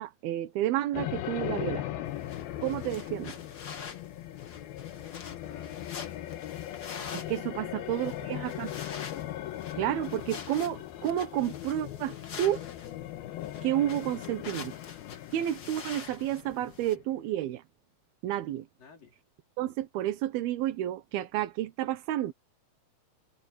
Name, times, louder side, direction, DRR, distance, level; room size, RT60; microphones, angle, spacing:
voice 1, 0.0-1.8 2.6-3.3 7.1-8.7 9.7-12.6 13.6-14.7 15.3-17.6 18.2-18.6 19.6-22.3, right 12 dB, 85° right, 3.1 m, -31 dB
sound 1, 0.9-17.2, left 13 dB, 85° left, 3.0 m, -39 dB
sound 2, 2.1-17.0, left 6 dB, 50° left, 1.2 m, -46 dB
voice 2, 4.8-5.8 7.6-7.8 18.8-19.2, left 5 dB, 65° left, 6.3 m, -53 dB
omnidirectional pair, 4.3 m